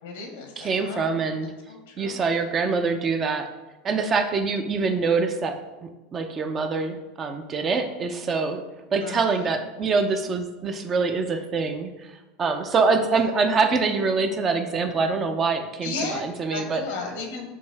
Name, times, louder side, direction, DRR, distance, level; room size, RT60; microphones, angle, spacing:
voice 1, 0.0-1.1 1.7-2.2 9.0-9.5 13.1-13.4 15.8-16.2 16.5-17.4, left 4 dB, 85° left, 3 dB, 0.8 m, -35 dB
voice 2, 0.6-1.5 2.0-3.5 3.8-8.6 8.9-16.8, right 4 dB, 30° right, 7 dB, 0.4 m, -25 dB
5.3 x 2.7 x 3.3 m, 1.1 s
supercardioid pair, 115°, 0 cm